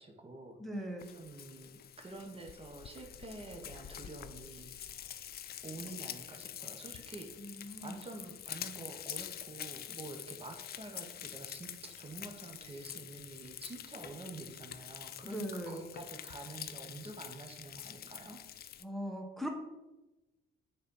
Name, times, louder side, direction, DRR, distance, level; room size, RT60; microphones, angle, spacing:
voice 1, 0.0-0.9 1.1-4.8 5.6-7.5 7.8-18.4, right 2 dB, 30° right, 3 dB, 1.1 m, -48 dB
voice 2, 0.6-1.1 7.4-7.9 15.2-15.8 18.8-19.5, equal, ahead, 2 dB, 1.1 m, -39 dB
Frying (food), 1.0-18.8, left 10 dB, 50° left, 0.4 m, -46 dB
6.6 x 4.0 x 5.5 m, 1.1 s
cardioid pair, 90°, 20 cm